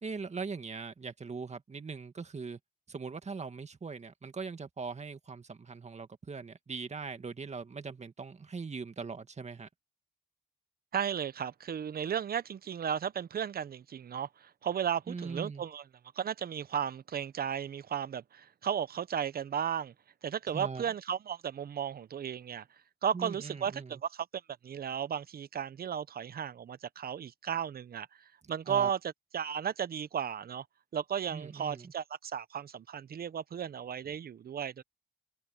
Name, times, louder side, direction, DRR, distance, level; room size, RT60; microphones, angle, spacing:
voice 1, 0.0-2.6 2.9-9.7 15.1-15.6 20.5-20.8 23.1-24.0 28.7-28.9 31.3-31.9, right 4 dB, 40° right, 2.1 m, -41 dB
voice 2, 10.9-15.8 16.2-19.9 20.2-22.6 23.0-24.3 24.6-28.1 28.5-29.0 29.3-30.6 30.9-34.8, right 8 dB, 55° right, 1.0 m, -34 dB
supercardioid pair, 50°, 18 cm